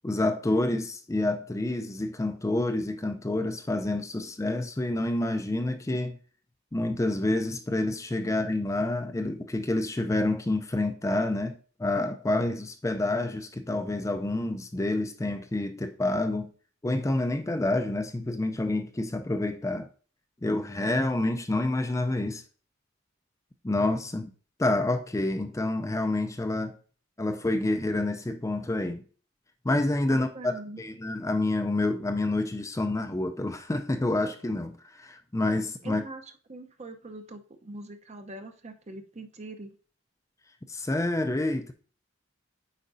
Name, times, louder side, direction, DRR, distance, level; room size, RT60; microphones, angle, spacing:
voice 1, 0.0-6.2 6.7-16.5 16.8-19.9 20.4-22.4 23.6-24.3 24.6-26.8 27.2-29.0 29.6-36.0 40.7-41.7, left 2 dB, 15° left, 0.4 m, -28 dB
voice 2, 30.1-30.8 35.8-36.2 36.5-39.8, right 2 dB, 35° right, 0.7 m, -42 dB
8.3 x 5.1 x 2.6 m
head